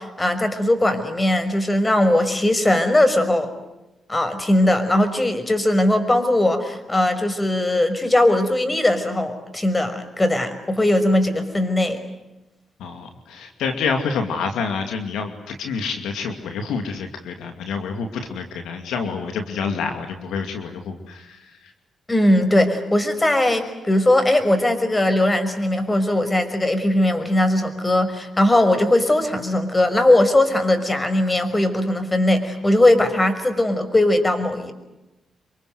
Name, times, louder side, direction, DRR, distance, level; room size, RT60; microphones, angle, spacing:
voice 1, 0.0-3.5 4.1-12.0 22.1-34.7, left 1 dB, 20° left, 9 dB, 5.8 m, -19 dB
voice 2, 12.8-21.7, left 5 dB, 85° left, 5 dB, 2.6 m, -28 dB
28.0 x 24.0 x 8.0 m, 0.97 s
supercardioid pair, 50°, 0 cm